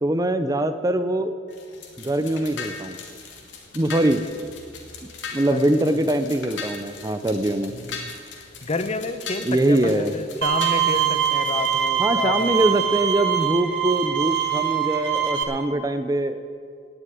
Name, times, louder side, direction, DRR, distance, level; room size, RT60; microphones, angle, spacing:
voice 1, 0.0-1.3 2.0-3.0 3.7-4.2 5.3-7.7 9.4-10.1 12.0-16.4, right 1 dB, 20° right, 10 dB, 0.6 m, -22 dB
sound 1, 1.5-11.9, left 5 dB, 85° left, 2.4 m, -39 dB
voice 2, 5.5-6.1 7.7-8.2 8.6-12.5, left 3 dB, 35° left, 9 dB, 0.8 m, -30 dB
Bowed string instrument, 10.4-15.4, right 10 dB, 70° right, 1.7 m, -23 dB
17.5 x 6.7 x 9.2 m, 2.2 s
head